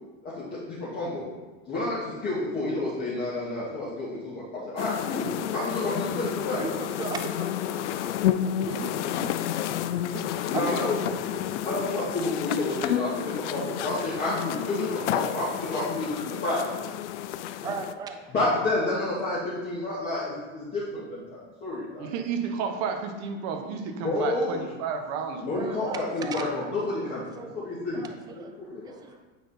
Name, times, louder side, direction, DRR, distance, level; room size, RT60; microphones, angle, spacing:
voice 1, 0.2-1.3 1.7-6.6 10.5-11.0 11.6-13.1 13.4-16.6 18.3-22.1 24.0-24.6 25.4-28.1 28.3-28.9, left 2 dB, 25° left, -10 dB, 2.1 m, -30 dB
sound 1, 4.8-17.9, left 11 dB, 90° left, 0.5 m, -30 dB
voice 2, 6.6-9.6 10.1-11.4 17.6-18.5 25.5-27.6 27.9-28.5 28.8-29.2, right 5 dB, 10° right, 6 dB, 0.4 m, -38 dB
voice 3, 22.0-25.4, right 6 dB, 50° right, 5 dB, 1.1 m, -31 dB
9.2 x 3.7 x 4.3 m, 1.2 s
supercardioid pair, 135°, 34 cm